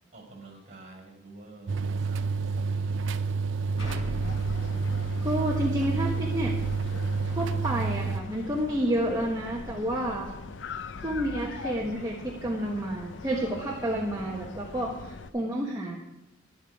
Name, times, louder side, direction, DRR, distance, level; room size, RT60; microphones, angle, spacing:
voice 1, 0.1-3.0, right 2 dB, 35° right, 1 dB, 5.5 m, -48 dB
sound 1, 1.7-8.2, right 4 dB, 70° right, 0.5 m, -29 dB
Explosion, 3.8-8.5, equal, 85° left, 5.3 m, -42 dB
sound 2, 4.2-15.3, left 4 dB, 65° left, 0.6 m, -42 dB
voice 2, 5.2-6.6 7.3-10.3 11.0-16.0, right 1 dB, 20° right, -2 dB, 1.2 m, -30 dB
12.0 x 11.0 x 4.8 m, 0.94 s
head